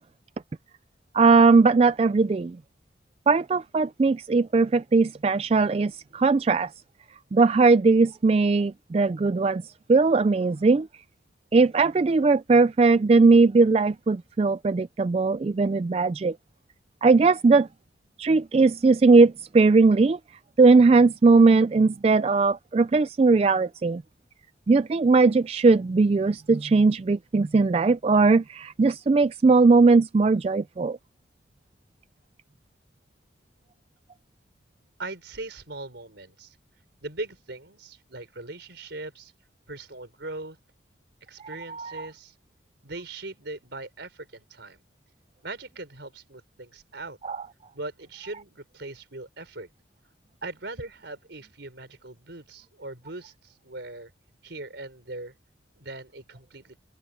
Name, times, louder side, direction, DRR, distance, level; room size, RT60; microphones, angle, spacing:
voice 1, 1.1-2.6 3.3-6.7 7.3-10.9 11.5-16.4 17.0-17.7 18.2-20.2 20.6-24.0 24.7-31.0 41.4-42.1 47.2-47.4, right 3 dB, 30° right, 0.3 m, -19 dB
voice 2, 35.0-36.6 37.0-39.3 39.7-40.6 41.3-42.3 42.8-44.8 45.4-47.2 47.7-49.7 50.4-54.1 54.4-55.3 55.8-56.8, right 2 dB, 65° right, 4.2 m, -40 dB
head